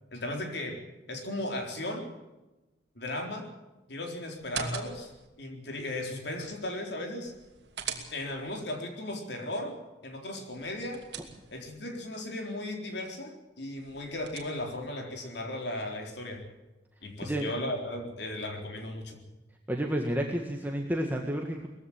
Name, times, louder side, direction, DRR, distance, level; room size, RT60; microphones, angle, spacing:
voice 1, 0.1-0.8 1.1-2.1 3.0-3.5 3.9-5.1 5.4-7.3 8.1-9.8 10.0-11.0 11.5-16.4 17.0-19.2, left 1 dB, 60° left, 3 dB, 4.0 m, -36 dB
sound 1, 4.4-5.3 7.3-8.5 10.5-11.8 13.8-14.9, right 5 dB, 60° right, 2.8 m, -41 dB
voice 2, 19.7-21.7, equal, 10° right, 1 dB, 1.7 m, -30 dB
20.5 x 15.5 x 8.6 m, 1.0 s
head